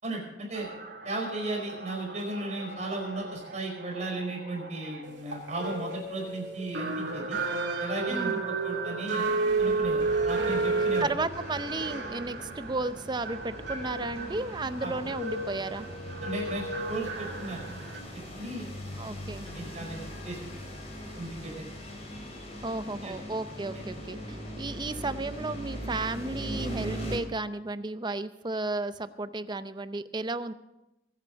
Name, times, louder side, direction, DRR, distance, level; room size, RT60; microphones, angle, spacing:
voice 1, 0.0-0.7 1.0-7.4 7.8-9.3 9.6-11.1 14.8-14.9 16.2-17.6 18.4-18.7 19.4-20.5 21.2-21.7 23.0-23.1, right 2 dB, 40° right, -1 dB, 4.9 m, -35 dB
sound 1, 0.5-18.0, right 3 dB, 65° right, 3.0 m, -33 dB
voice 2, 8.1-8.4 10.4-10.5 11.0-15.9 19.0-19.5 22.6-30.5, right 2 dB, 25° right, 12 dB, 0.6 m, -33 dB
sound 2, 9.5-27.2, equal, 35° left, 3.6 m, -40 dB
22.0 x 9.1 x 5.3 m, 0.96 s
head